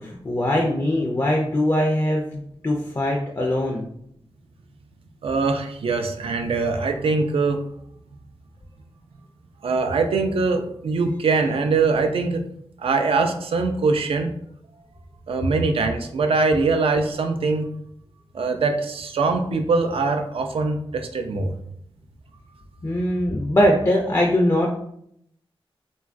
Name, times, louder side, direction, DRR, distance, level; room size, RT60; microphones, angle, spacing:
voice 1, 0.0-3.8 22.8-24.7, left 1 dB, 30° left, -1 dB, 0.4 m, -21 dB
voice 2, 5.2-7.6 9.6-12.4 12.8-14.3 15.3-17.7 18.3-21.5, right 4 dB, 75° right, 6 dB, 0.4 m, -22 dB
3.0 x 2.3 x 2.4 m, 0.72 s
wide cardioid pair, 70°, 10 cm